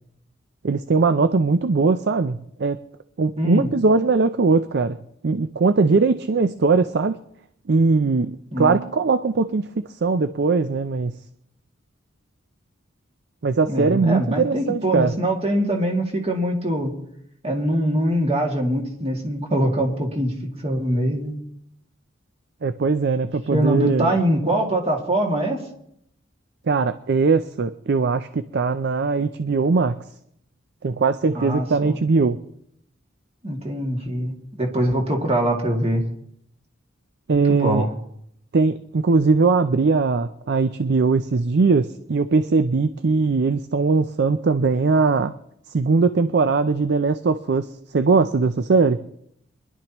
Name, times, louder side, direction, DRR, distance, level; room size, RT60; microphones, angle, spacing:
voice 1, 0.6-2.8 3.2-5.0 5.2-7.2 7.7-9.7 10.0-11.2 13.4-15.1 22.6-24.1 26.7-30.0 30.8-32.4 37.3-37.8 38.5-45.3 45.7-49.0, right 4 dB, 60° right, 11 dB, 0.5 m, -20 dB
voice 2, 3.4-3.7 8.5-8.8 13.7-16.9 17.4-20.3 20.6-21.3 23.5-25.6 31.3-32.0 33.4-36.0 37.5-37.9, right 1 dB, 30° right, 1 dB, 2.3 m, -23 dB
24.5 x 11.5 x 3.0 m, 0.74 s
head